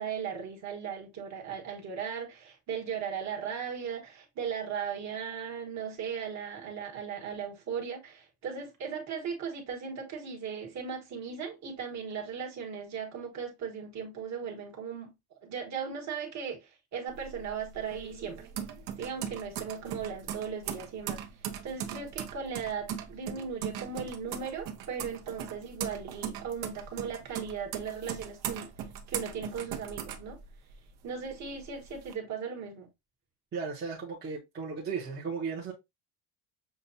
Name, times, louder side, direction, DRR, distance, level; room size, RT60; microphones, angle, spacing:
voice 1, 0.0-18.5 19.0-28.7 29.1-30.4 31.0-32.9, right 6 dB, 40° right, 1.3 m, -37 dB
sound 1, 17.1-30.9 31.3-32.1, right 9 dB, 60° right, 0.8 m, -39 dB
voice 2, 33.5-35.7, right 5 dB, 25° right, 0.8 m, -35 dB
6.6 x 2.3 x 2.6 m
cardioid pair, 175°, 43 cm